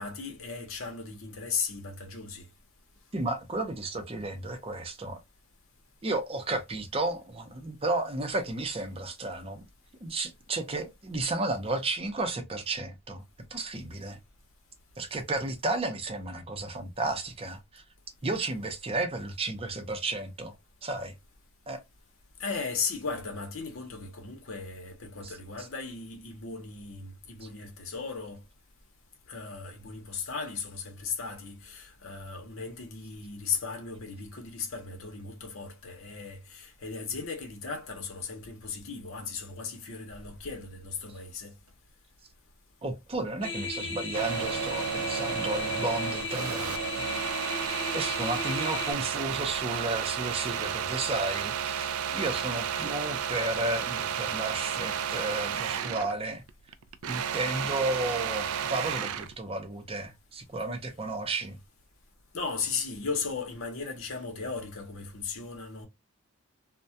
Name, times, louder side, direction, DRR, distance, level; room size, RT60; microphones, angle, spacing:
voice 1, 0.0-2.5 22.4-28.4 29.3-41.5 62.3-65.9, left 5 dB, 70° left, 0.8 m, -36 dB
voice 2, 3.1-5.2 6.0-9.6 10.0-13.2 13.5-14.2 15.0-17.8 18.2-20.5 20.8-21.1 21.7-21.8 25.2-25.3 25.6-25.7 27.4-27.5 42.8-47.1 47.9-56.4 57.1-61.6, right 2 dB, 30° right, 0.6 m, -33 dB
sound 1, 43.4-48.9, left 3 dB, 25° left, 0.8 m, -36 dB
sound 2, 44.1-56.2 56.5-59.3, right 8 dB, 85° right, 0.3 m, -32 dB
2.2 x 2.1 x 2.6 m
head